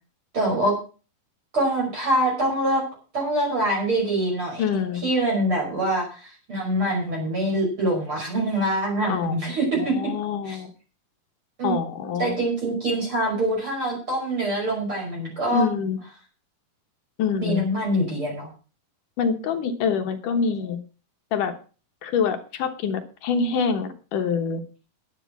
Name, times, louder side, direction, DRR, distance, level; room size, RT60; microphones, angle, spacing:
voice 1, 0.3-0.7 1.5-2.8 3.1-4.6 5.0-9.9 10.5-10.6 11.6-11.8 12.2-15.7 17.4-18.5, right 1 dB, 30° right, 0 dB, 6.2 m, -24 dB
voice 2, 4.6-5.1 9.1-9.4 9.8-10.7 11.6-12.4 15.5-16.0 17.2-17.7 19.2-20.8 21.3-21.5 22.0-24.6, left 6 dB, 65° left, 7 dB, 2.3 m, -25 dB
11.0 x 10.5 x 6.1 m, 0.36 s
omnidirectional pair, 4.9 m